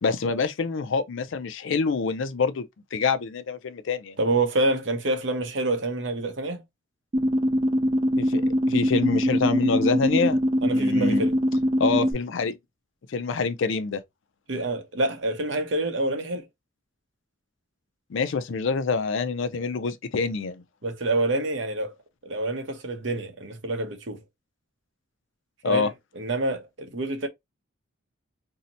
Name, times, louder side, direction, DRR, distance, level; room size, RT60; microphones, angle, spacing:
voice 1, 0.0-2.6 2.9-4.2 8.2-8.4 8.7-10.4 10.7-11.2 11.8-12.5 13.1-14.0 18.1-20.6 25.6-25.9, left 4 dB, 65° left, 0.4 m, -26 dB
voice 2, 4.2-6.6 10.6-11.3 14.5-16.5 20.8-22.0 22.2-24.2 25.6-27.3, right 2 dB, 60° right, 0.7 m, -27 dB
sound 1, 7.1-12.1, equal, 25° right, 0.4 m, -23 dB
2.7 x 2.1 x 3.8 m
head